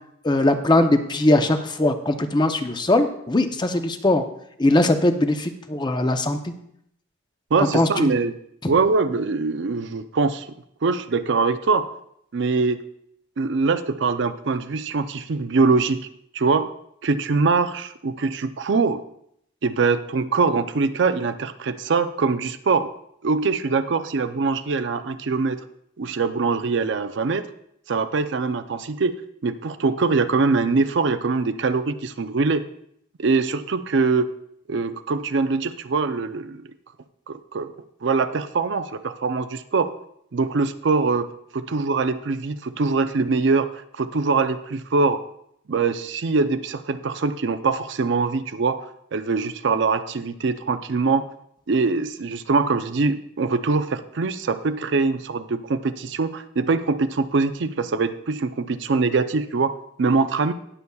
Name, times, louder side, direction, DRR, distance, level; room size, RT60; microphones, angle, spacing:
voice 1, 0.2-4.2 4.6-6.5 7.7-8.1, left 1 dB, 25° left, 7 dB, 0.6 m, -20 dB
voice 2, 7.5-8.4 8.7-10.5 10.8-11.9 12.3-12.8 13.4-16.1 16.3-16.7 17.0-19.0 19.6-22.9 23.2-25.6 26.0-27.5 27.9-29.1 29.4-32.6 33.2-34.3 34.7-36.6 37.3-37.7 38.0-39.9 40.3-41.3 41.5-45.2 45.7-48.8 49.1-51.2 51.7-59.7 60.0-60.5, right 4 dB, 65° right, 10 dB, 0.5 m, -23 dB
19.0 x 6.9 x 2.3 m, 0.72 s
head